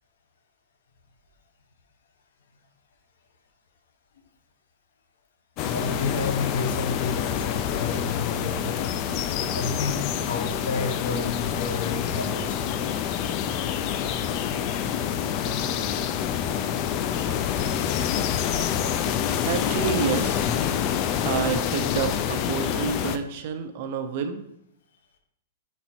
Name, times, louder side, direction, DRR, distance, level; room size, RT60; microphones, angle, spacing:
voice 1, 5.6-8.9 9.5-12.6 15.5-15.6, left 4 dB, 80° left, 4 dB, 1.0 m, -30 dB
sound 1, 5.6-23.2, left 9 dB, 30° left, 0.3 m, -27 dB
voice 2, 19.5-20.5 21.2-24.4, right 7 dB, 45° right, 7 dB, 0.6 m, -28 dB
5.2 x 4.2 x 4.4 m, 0.75 s
supercardioid pair, 165°, 0 cm